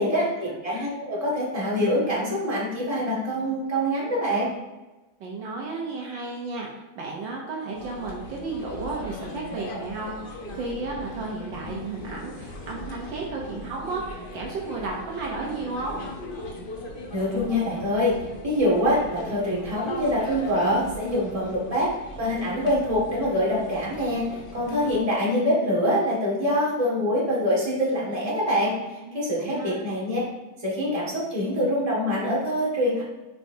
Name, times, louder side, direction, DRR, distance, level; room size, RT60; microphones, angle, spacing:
voice 1, 0.0-4.5 17.1-18.2 18.4-21.9 22.2-30.2 30.6-33.0, equal, 20° right, -6 dB, 1.8 m, -25 dB
voice 2, 5.2-6.7 6.9-16.0 29.0-29.8, right 3 dB, 70° right, -2 dB, 1.6 m, -33 dB
sound 1, 7.7-25.0, left 2 dB, 70° left, 0.5 m, -39 dB
8.9 x 4.7 x 2.7 m, 1.1 s
omnidirectional pair, 2.2 m